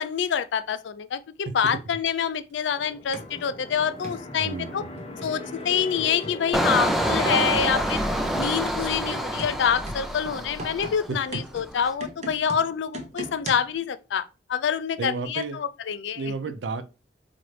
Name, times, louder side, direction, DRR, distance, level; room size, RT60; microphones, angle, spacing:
voice 1, 0.0-4.8 5.2-8.0 8.3-16.2, left 7 dB, 80° left, 0.4 m, -26 dB
voice 2, 1.4-1.8 4.4-5.0 11.1-11.2 15.0-15.6 16.1-16.8, right 4 dB, 80° right, 0.5 m, -32 dB
sound 1, 1.7-1.8 3.1-3.4 4.0-4.3 5.0-5.4 6.0-6.5 7.0-7.5 8.1-8.6 9.1-13.8, right 1 dB, 40° right, 0.7 m, -39 dB
sound 2, 2.7-13.4, left 2 dB, 35° left, 0.7 m, -42 dB
Engine, 6.5-11.2 11.6-11.9, right 1 dB, ahead, 0.4 m, -27 dB
4.2 x 2.5 x 3.2 m
head